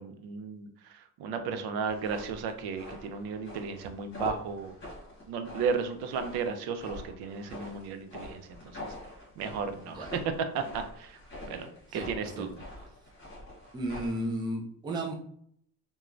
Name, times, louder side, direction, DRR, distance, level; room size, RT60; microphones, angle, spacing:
voice 1, 0.0-4.8 5.3-8.9 9.4-10.2 10.5-11.2 11.5-12.5, right 5 dB, 75° right, 8 dB, 0.5 m, -34 dB
sound 1, 1.9-14.3, left 1 dB, 30° left, 1.1 m, -45 dB
voice 2, 11.9-12.5 13.7-15.1, right 1 dB, 10° right, -1 dB, 0.3 m, -34 dB
3.0 x 2.2 x 2.5 m, 0.67 s
cardioid pair, 145°, 38 cm